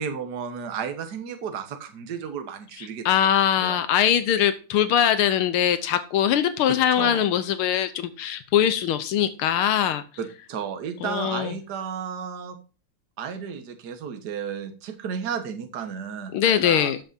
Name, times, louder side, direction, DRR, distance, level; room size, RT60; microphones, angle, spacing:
voice 1, 0.0-3.0 3.6-3.8 7.0-7.2 10.2-12.6 13.2-16.9, right 7 dB, 55° right, 7 dB, 1.8 m, -33 dB
voice 2, 2.8-10.0 11.0-11.6 16.3-17.0, left 10 dB, 85° left, 11 dB, 1.7 m, -22 dB
13.0 x 7.7 x 2.7 m, 0.35 s
omnidirectional pair, 2.3 m